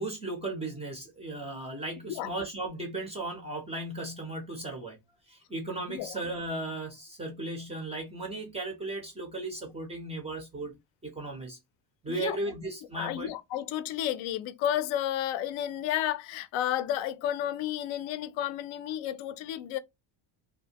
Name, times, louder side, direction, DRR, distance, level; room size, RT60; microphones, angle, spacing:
voice 1, 0.0-5.0 5.3-10.8 11.0-11.6 12.0-13.3, right 2 dB, 15° right, 0.3 m, -36 dB
voice 2, 12.9-19.8, left 11 dB, 85° left, 0.5 m, -32 dB
2.5 x 2.1 x 2.7 m
cardioid pair, 155°, 46 cm